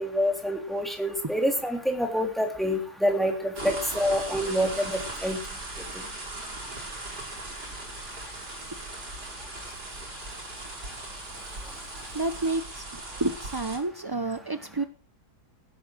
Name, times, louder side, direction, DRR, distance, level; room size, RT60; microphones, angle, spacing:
voice 1, 0.0-5.4, equal, ahead, 3 dB, 3.2 m, -27 dB
sound 1, 3.6-13.8, right 2 dB, 75° right, 6.1 m, -38 dB
voice 2, 12.1-14.8, right 2 dB, 25° right, 11 dB, 0.5 m, -30 dB
16.5 x 11.0 x 6.4 m, 0.41 s
omnidirectional pair, 1.8 m